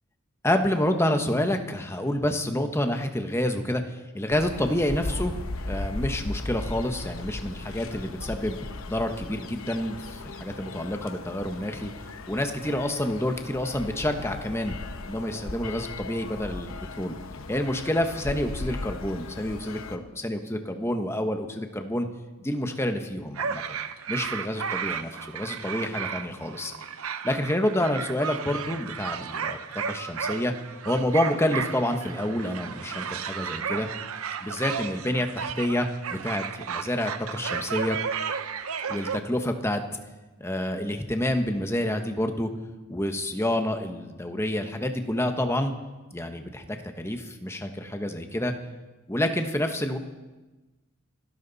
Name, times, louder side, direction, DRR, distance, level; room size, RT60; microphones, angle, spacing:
voice 1, 0.4-3.8 4.1-5.3 5.7-8.6 8.9-11.9 12.3-14.8 15.1-17.1 17.5-22.1 22.4-23.8 24.1-26.7 27.2-29.6 29.8-30.5 30.8-33.9 34.4-38.0 38.9-39.8 40.4-42.5 42.9-45.7 46.1-48.5 49.1-50.0, left 1 dB, 10° left, 6 dB, 1.2 m, -28 dB
sound 1, 4.3-20.0, left 2 dB, 75° left, 0.9 m, -37 dB
sound 2, 23.4-39.2, right 6 dB, 85° right, 0.8 m, -33 dB
26.0 x 12.5 x 4.1 m, 1.2 s
head